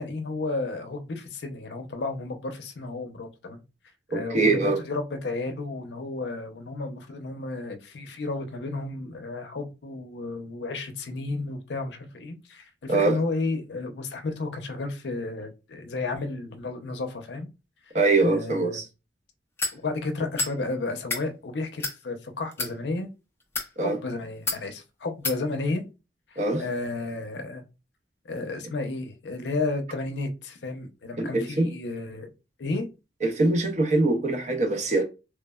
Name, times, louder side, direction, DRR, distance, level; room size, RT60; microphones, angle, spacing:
voice 1, 0.0-3.6 4.1-17.5 18.2-18.8 19.7-23.1 23.8-25.8 26.3-27.6 28.2-32.3 32.6-32.9, left 3 dB, 70° left, 0.5 m, -32 dB
voice 2, 4.1-4.8 12.9-13.2 17.9-18.9 23.8-24.0 26.4-26.6 31.2-31.7 33.2-35.0, right 2 dB, 40° right, 0.6 m, -23 dB
sound 1, 19.6-19.8 20.4-20.6 21.0-21.2 21.8-22.0 22.5-22.7 23.4-23.7 24.5-24.6 25.2-25.4, left 3 dB, 15° left, 0.4 m, -29 dB
3.2 x 2.0 x 2.2 m
head